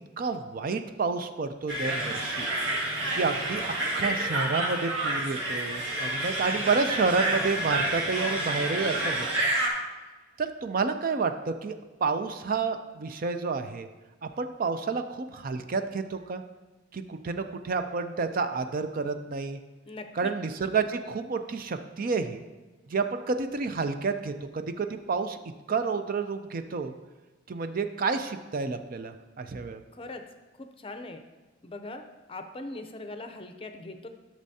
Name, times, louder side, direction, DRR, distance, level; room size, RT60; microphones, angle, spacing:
voice 1, 0.2-2.5 3.1-3.6 3.9-9.4 10.4-11.8 12.0-13.9 14.2-16.4 16.9-19.6 20.2-22.4 22.9-25.4 25.7-26.9 27.5-29.8, right 4 dB, 45° right, 8 dB, 0.4 m, -30 dB
sound 1, 1.7-9.7, right 1 dB, 70° right, 1.6 m, -29 dB
voice 2, 19.9-20.3 29.9-30.2 30.8-31.2 31.6-32.0 32.3-34.1, left 2 dB, 30° left, 7 dB, 0.5 m, -40 dB
12.0 x 6.3 x 2.7 m, 1.2 s
head